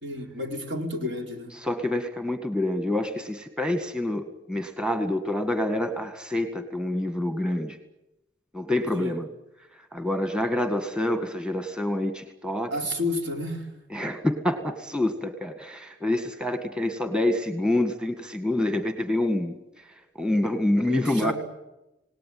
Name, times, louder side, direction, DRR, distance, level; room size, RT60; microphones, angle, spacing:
voice 1, 0.0-1.5 8.9-9.1 12.7-13.7 20.9-21.3, left 1 dB, 75° right, 3 dB, 4.4 m, -30 dB
voice 2, 1.6-7.8 8.5-9.3 9.9-12.7 13.9-19.5 20.2-21.3, left 1 dB, 5° right, 7 dB, 1.9 m, -27 dB
27.5 x 19.0 x 9.4 m, 0.95 s
head